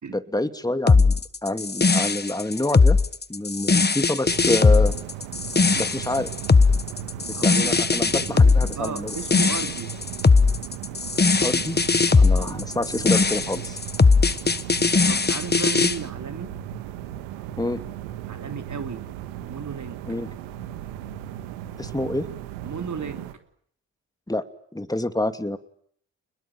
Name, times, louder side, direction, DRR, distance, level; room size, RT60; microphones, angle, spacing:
voice 1, 0.1-3.0 3.3-5.0 5.8-6.3 7.3-9.2 11.4-11.8 12.2-13.8 17.6-17.8 20.1-20.3 21.8-22.3 24.3-24.4 24.7-25.6, left 1 dB, 10° left, 9 dB, 2.7 m, -27 dB
sound 1, 0.9-16.0, left 4 dB, 25° left, 1.5 m, -19 dB
sound 2, 4.2-23.3, right 11 dB, 90° right, 1.7 m, -36 dB
voice 2, 7.3-8.1 8.3-9.9 12.3-12.6 15.0-16.6 18.3-19.0 19.5-20.0 22.6-23.3, right 6 dB, 50° right, 7 dB, 3.6 m, -35 dB
29.0 x 21.5 x 9.1 m, 0.63 s
hypercardioid pair, 40°, 38 cm